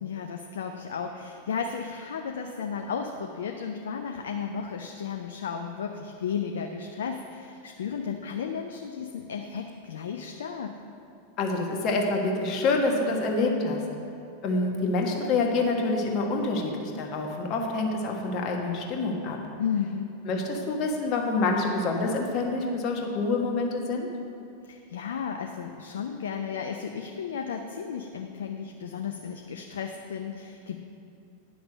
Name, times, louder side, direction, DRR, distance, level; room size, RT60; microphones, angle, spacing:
voice 1, 0.0-10.7 19.6-20.1 24.6-30.8, left 6 dB, 65° left, 4 dB, 0.5 m, -34 dB
voice 2, 11.4-13.8 14.4-19.4 20.3-24.1, left 3 dB, 40° left, 1 dB, 1.4 m, -27 dB
10.5 x 6.0 x 6.2 m, 2.6 s
figure-of-eight pair, 90°, 0 cm